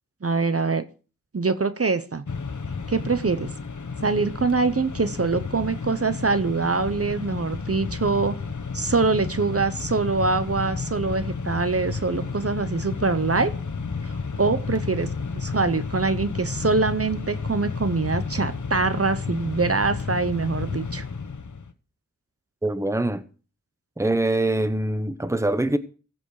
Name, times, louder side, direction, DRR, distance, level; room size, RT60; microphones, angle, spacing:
voice 1, 0.2-0.8 1.3-2.2 2.9-3.5 4.0-8.4 8.7-13.5 14.0-15.1 15.3-21.0, right 4 dB, 50° right, 0.8 m, -24 dB
Mechanisms, 2.3-21.7, left 4 dB, 70° left, 1.1 m, -32 dB
voice 2, 22.6-23.2 24.0-25.8, right 1 dB, 10° right, 0.9 m, -23 dB
15.5 x 7.1 x 4.8 m
wide cardioid pair, 60°, 31 cm